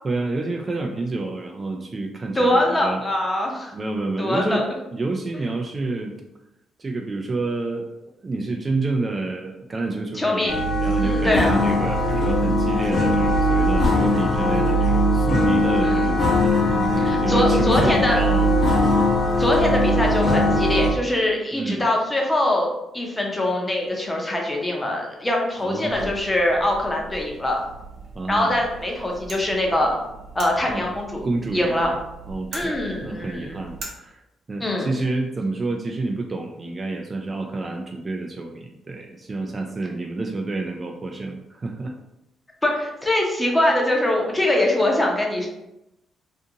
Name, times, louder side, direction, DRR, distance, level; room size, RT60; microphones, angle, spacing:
voice 1, 0.0-3.0 3.7-6.2 6.8-7.9 8.2-18.6 21.5-21.8 25.6-26.1 28.1-28.5 30.7-30.9 31.2-31.9 32.3-42.0, right 2 dB, 30° right, 2 dB, 0.3 m, -29 dB
voice 2, 2.4-3.7 4.2-4.6 10.1-10.6 11.0-11.6 15.8-16.1 17.0-18.3 19.4-27.6 28.3-30.0 30.3-31.2 31.5-31.9 32.5-33.6 34.6-34.9 42.6-45.5, left 1 dB, 15° left, 0 dB, 0.7 m, -23 dB
sound 1, 10.5-20.9, left 1 dB, 45° left, 0.8 m, -20 dB
sound 2, 25.9-33.9, right 3 dB, 70° right, 0.6 m, -41 dB
2.5 x 2.5 x 2.7 m, 0.90 s
cardioid pair, 90°, 0 cm